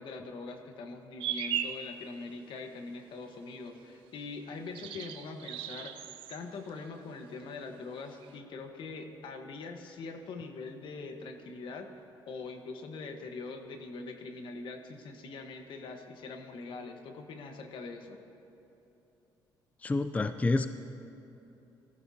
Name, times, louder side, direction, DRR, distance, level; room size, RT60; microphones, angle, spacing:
voice 1, 0.0-11.9 12.3-18.2, left 3 dB, 70° left, 5 dB, 1.3 m, -43 dB
sound 1, 1.2-1.9 4.6-6.4 6.7-7.3 8.2-8.3, right 9 dB, 90° right, 0.7 m, -37 dB
voice 2, 19.8-20.7, left 3 dB, 15° left, 10 dB, 0.4 m, -28 dB
19.0 x 14.5 x 2.8 m, 3.0 s
cardioid pair, 95°, 9 cm